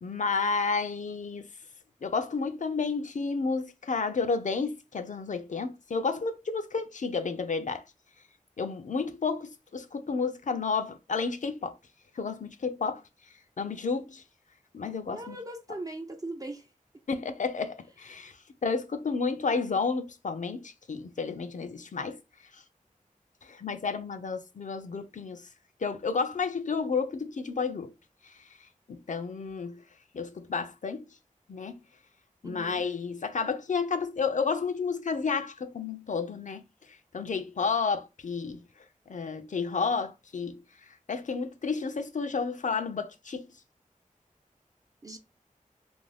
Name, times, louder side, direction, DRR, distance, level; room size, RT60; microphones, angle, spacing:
voice 1, 0.0-1.5 2.0-7.8 8.6-11.8 12.1-13.0 13.6-14.2 14.7-15.4 17.1-22.2 22.5-22.6 23.4-25.5 25.8-27.9 28.2-28.5 28.9-29.8 30.1-31.0 31.5-31.8 32.4-38.6 39.1-43.5, left 4 dB, 60° left, 0.4 m, -31 dB
voice 2, 15.1-16.7 32.4-32.8 45.0-45.2, right 2 dB, 25° right, 0.4 m, -39 dB
2.5 x 2.2 x 3.2 m
wide cardioid pair, 70°, 14 cm